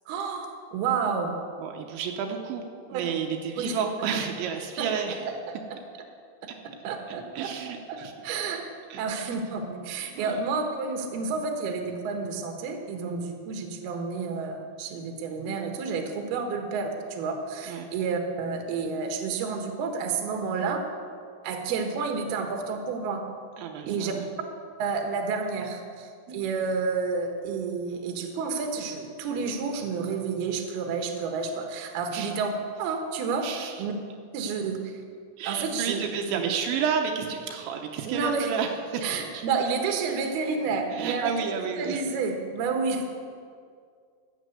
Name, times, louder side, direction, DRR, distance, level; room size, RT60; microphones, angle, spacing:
voice 1, 0.1-1.4 2.9-3.1 3.6-3.8 4.8-4.9 5.2-5.3 6.8-7.5 7.9-8.0 8.2-8.7 9.0-20.8 21.4-23.2 23.9-24.1 24.8-33.5 33.8-33.9 34.3-35.0 35.5-36.0 36.3-36.4 38.1-38.5 39.0-41.3 41.8-43.0, right 5 dB, 65° right, 3 dB, 3.0 m, -30 dB
voice 2, 1.6-5.2 7.1-8.1 8.9-9.3 10.2-10.4 17.7-17.9 23.6-24.3 32.1-32.3 33.4-33.8 35.4-39.4 40.9-42.0, right 7 dB, 85° right, 3 dB, 3.2 m, -31 dB
13.0 x 9.3 x 8.0 m, 2.2 s
omnidirectional pair, 5.4 m